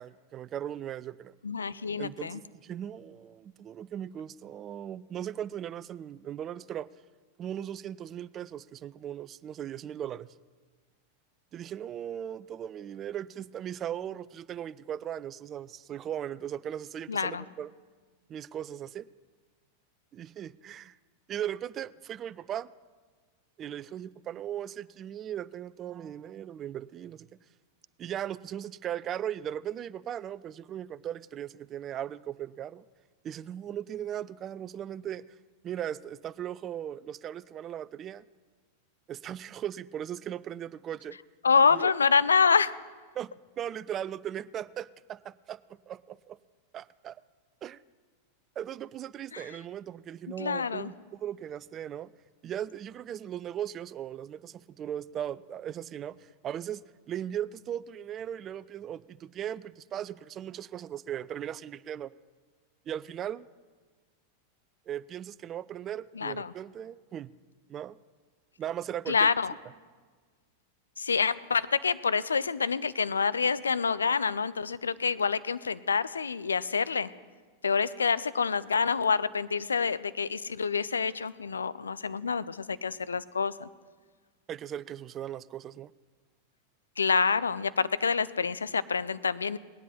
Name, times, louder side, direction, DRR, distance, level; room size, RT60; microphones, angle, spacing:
voice 1, 0.0-1.3 2.0-6.9 7.4-10.3 11.5-17.7 18.3-19.1 20.1-20.9 21.3-22.7 23.6-27.3 28.0-32.8 33.2-35.2 35.6-38.2 39.1-41.2 41.7-41.9 43.2-43.3 43.6-46.4 46.7-47.2 47.6-47.8 48.6-52.1 52.4-56.8 57.1-62.1 62.9-63.5 64.9-67.3 67.7-68.0 68.6-69.3 84.5-85.9, right 10 dB, 30° right, 19 dB, 0.3 m, -38 dB
voice 2, 1.4-2.4 17.1-17.4 41.4-42.7 49.3-49.5 50.4-50.9 66.1-66.5 69.1-69.5 71.0-77.1 77.6-83.7 87.0-89.6, left 5 dB, 75° left, 16 dB, 0.4 m, -27 dB
18.5 x 10.0 x 4.2 m, 1.4 s
figure-of-eight pair, 90°, 0 cm